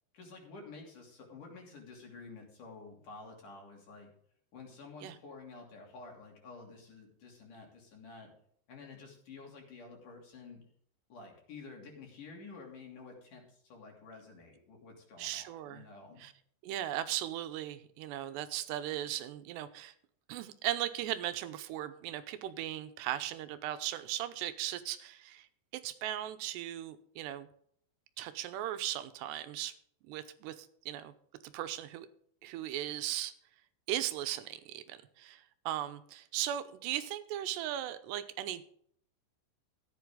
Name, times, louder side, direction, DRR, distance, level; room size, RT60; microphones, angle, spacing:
voice 1, 0.1-4.1 4.5-8.3 8.7-10.6 11.1-16.2, left 4 dB, 50° left, 1 dB, 4.2 m, -50 dB
voice 2, 15.2-15.8 16.2-16.3 16.6-19.9 20.3-25.5 25.7-27.5 28.2-29.7 30.1-31.1 31.4-32.1 32.4-33.3 33.9-38.6, right 12 dB, 85° right, 11 dB, 2.9 m, -37 dB
14.0 x 10.5 x 3.8 m, 0.65 s
omnidirectional pair, 4.9 m